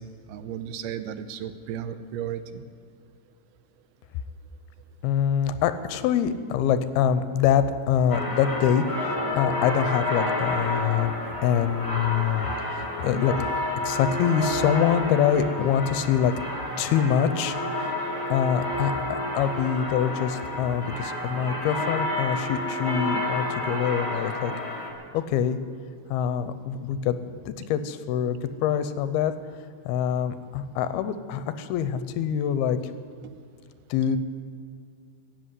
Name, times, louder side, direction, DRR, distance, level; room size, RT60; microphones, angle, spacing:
voice 1, 0.0-2.6, right 9 dB, 80° right, 11 dB, 2.6 m, -35 dB
voice 2, 5.0-8.8 9.4-11.1 11.4-13.4 13.8-16.3 16.8-17.9 18.3-24.5 25.1-25.6 26.1-27.2 27.5-29.3 29.9-32.8 33.9-34.2, left 8 dB, 85° left, 11 dB, 2.6 m, -25 dB
sound 1, 8.1-24.9, left 1 dB, 15° left, 0.6 m, -30 dB
16.5 x 8.1 x 9.6 m, 2.2 s
omnidirectional pair, 4.5 m